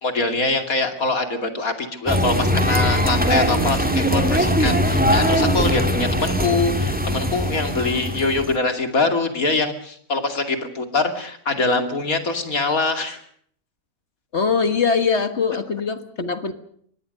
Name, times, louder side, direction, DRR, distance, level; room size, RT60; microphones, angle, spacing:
voice 1, 0.0-13.2, left 3 dB, 70° left, 7 dB, 3.0 m, -23 dB
sound 1, 2.1-8.6, equal, 5° right, 2.5 m, -20 dB
voice 2, 14.3-16.5, left 5 dB, 50° left, 11 dB, 1.8 m, -22 dB
24.5 x 19.5 x 6.6 m, 0.63 s
omnidirectional pair, 1.6 m